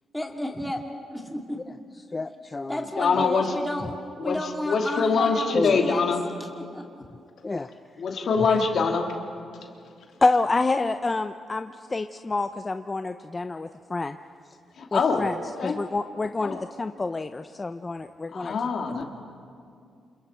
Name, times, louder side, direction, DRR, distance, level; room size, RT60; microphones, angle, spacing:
voice 1, 0.1-0.8 1.1-1.6 2.7-6.0 6.4-7.0, left 1 dB, 5° left, 1 dB, 2.2 m, -32 dB
voice 2, 2.1-2.8 3.2-3.3 5.5-5.8 7.4-7.7 10.2-14.2 14.9-15.4 15.6-18.5, left 3 dB, 20° left, 8 dB, 0.5 m, -27 dB
voice 3, 3.0-3.5 4.2-4.4 4.7-6.2 8.0-9.1 14.8-15.3 15.6-15.7 16.4-16.6 18.3-19.0, left 5 dB, 55° left, 2 dB, 2.5 m, -24 dB
voice 4, 8.1-8.6 9.5-10.2, left 3 dB, 80° left, 2 dB, 2.4 m, -40 dB
28.5 x 28.0 x 4.4 m, 2.4 s
cardioid pair, 135°, 0 cm